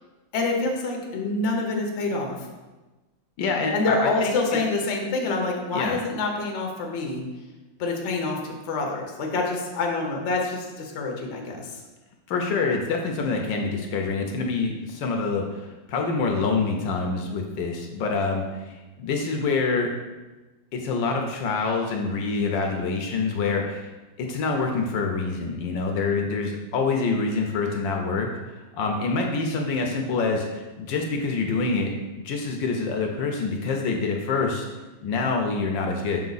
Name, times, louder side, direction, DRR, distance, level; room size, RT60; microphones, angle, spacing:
voice 1, 0.3-2.3 3.7-7.2 7.8-8.4 8.7-11.7, left 3 dB, 55° left, 1 dB, 0.8 m, -26 dB
voice 2, 3.4-4.6 5.7-6.0 12.3-19.9 20.7-23.9 24.2-31.9 32.2-34.6 35.0-36.2, left 4 dB, 70° left, 2 dB, 1.2 m, -26 dB
5.4 x 4.6 x 4.0 m, 1.2 s
omnidirectional pair, 2.3 m